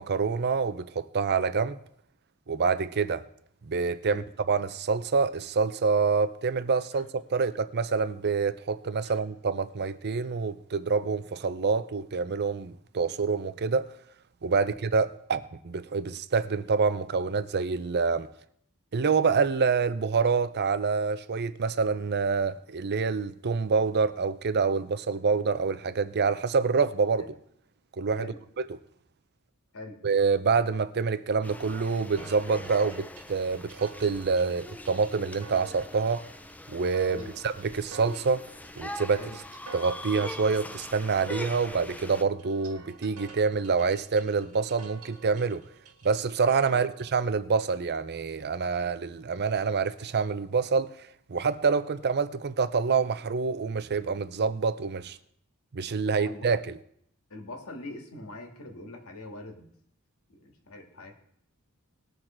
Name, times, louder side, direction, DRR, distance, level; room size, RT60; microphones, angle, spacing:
voice 1, 0.0-1.8 2.5-3.2 3.6-13.9 14.4-18.3 18.9-27.2 28.0-28.3 28.6-28.7 30.0-36.2 36.7-38.5 38.8-39.2 39.7-45.6 46.0-50.9 51.3-55.2 55.7-56.8, right 5 dB, 50° right, 0.6 m, -27 dB
sound 1, 31.4-42.2, left 1 dB, 5° left, 0.4 m, -43 dB
sound 2, 32.2-47.2, right 4 dB, 75° right, 1.8 m, -51 dB
voice 2, 56.1-56.5 57.3-59.7 60.3-61.1, left 2 dB, 75° left, 2.1 m, -43 dB
19.5 x 6.6 x 4.4 m
head